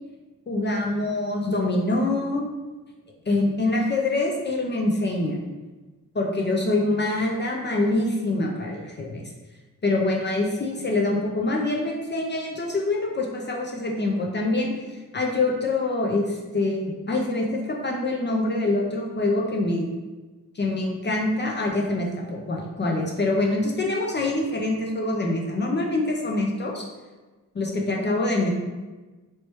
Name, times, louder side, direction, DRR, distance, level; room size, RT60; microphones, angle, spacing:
voice 1, 0.5-2.4 3.3-5.4 6.1-9.2 9.8-14.7 15.1-19.9 20.5-26.8 27.5-28.5, left 2 dB, 30° left, -1 dB, 0.5 m, -25 dB
3.1 x 3.0 x 3.0 m, 1.2 s
cardioid pair, 80°, 35 cm